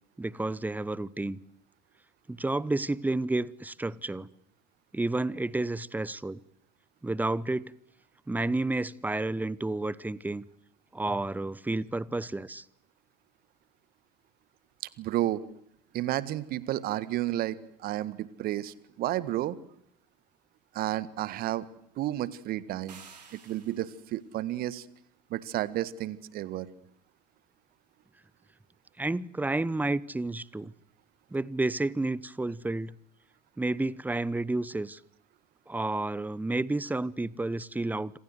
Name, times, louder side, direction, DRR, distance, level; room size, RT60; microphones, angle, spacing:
voice 1, 0.2-1.4 2.3-4.3 4.9-6.4 7.0-7.7 8.3-10.4 10.9-12.6 29.0-30.7 31.3-32.9 33.6-35.0 35.7-38.2, right 2 dB, 10° right, 1.1 m, -30 dB
voice 2, 15.0-15.4 15.9-19.6 20.7-21.7 22.0-23.0 23.3-24.8 25.3-26.7, right 14 dB, 45° right, 1.7 m, -31 dB
sound 1, 22.9-24.2, right 6 dB, 75° right, 4.7 m, -52 dB
27.0 x 26.5 x 8.1 m
figure-of-eight pair, 65°, 21 cm